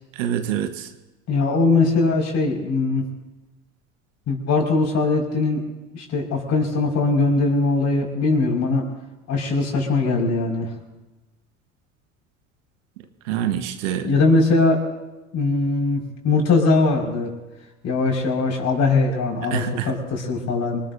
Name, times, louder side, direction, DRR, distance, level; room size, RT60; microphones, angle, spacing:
voice 1, 0.1-0.9 13.2-14.1 19.5-19.9, right 9 dB, 75° right, 8 dB, 1.4 m, -25 dB
voice 2, 1.3-3.0 4.3-5.6 5.9-8.8 9.3-10.7 14.0-14.8 15.3-17.3 17.8-20.8, left 3 dB, 45° left, 0 dB, 5.5 m, -21 dB
26.0 x 19.0 x 2.7 m, 1.1 s
hypercardioid pair, 80°, 38 cm